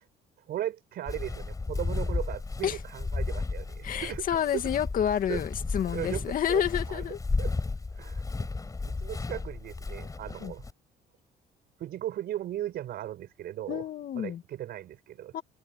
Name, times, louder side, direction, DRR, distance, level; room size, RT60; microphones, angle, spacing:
voice 1, 0.5-4.4 5.3-5.4 5.9-7.0 7.4-7.5 8.0-8.5 8.8-10.7 11.8-13.8 14.2-15.4, right 12 dB, 65° right, 5.7 m, -37 dB
Walk footsteps, 1.1-10.7, left 3 dB, 20° left, 5.5 m, -34 dB
voice 2, 3.8-7.2 10.4-10.5 13.7-14.4 15.3-15.4, left 9 dB, 55° left, 2.4 m, -29 dB
cardioid pair, 110°, 17 cm